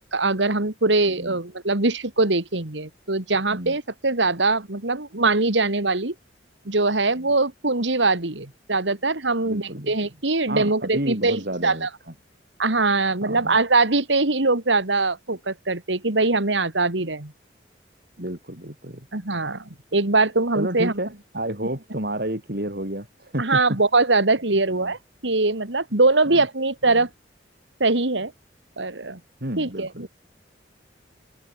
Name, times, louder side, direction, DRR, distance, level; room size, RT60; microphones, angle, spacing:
voice 1, 0.0-6.1 6.7-11.9 12.6-17.3 19.1-19.6 19.9-20.9 23.4-27.1 27.8-28.3 28.8-29.2 29.6-30.1, right 3 dB, 80° right, 2.5 m, -22 dB
voice 2, 9.4-9.9 10.5-12.1 13.2-13.6 18.2-19.1 20.5-23.8 24.7-24.9 26.3-26.5 26.9-27.1 29.4-30.1, right 1 dB, 55° right, 6.3 m, -31 dB
head